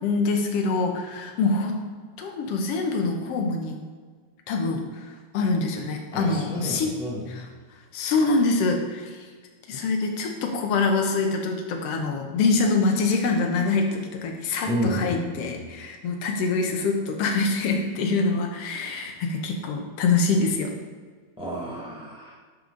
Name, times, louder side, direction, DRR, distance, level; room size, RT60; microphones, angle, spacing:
voice 1, 0.0-1.8 2.2-3.8 4.5-4.8 5.3-6.9 7.3-7.5 7.9-9.2 9.7-20.7, left 3 dB, 65° left, 2 dB, 1.6 m, -25 dB
voice 2, 6.1-7.3 14.7-15.6 21.4-22.3, equal, 5° right, -5 dB, 0.5 m, -30 dB
10.5 x 5.6 x 3.9 m, 1.5 s
omnidirectional pair, 3.8 m